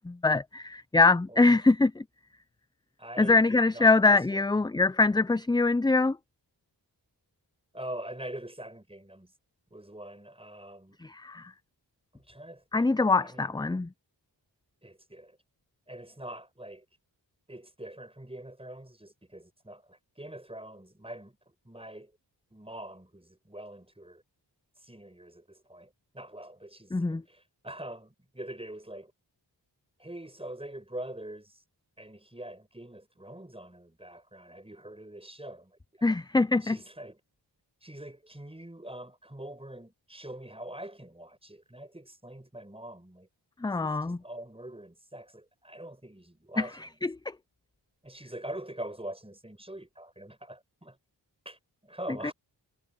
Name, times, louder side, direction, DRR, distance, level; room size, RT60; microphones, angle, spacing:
voice 1, 0.0-2.0 3.2-6.2 11.0-11.5 12.7-13.9 26.9-27.2 36.0-36.8 43.6-44.2 47.0-47.1 52.2-52.3, left 3 dB, 10° left, 0.4 m, -23 dB
voice 2, 3.0-4.4 7.7-9.3 9.7-11.0 12.1-12.9 13.2-13.6 14.8-15.4 15.9-16.9 17.5-22.1 22.5-24.2 24.8-29.1 30.0-31.6 32.0-36.1 36.6-37.2 37.8-43.3 43.7-46.9 48.0-51.0 51.4-52.3, right 1 dB, 15° right, 6.1 m, -44 dB
cardioid pair, 55°, 44 cm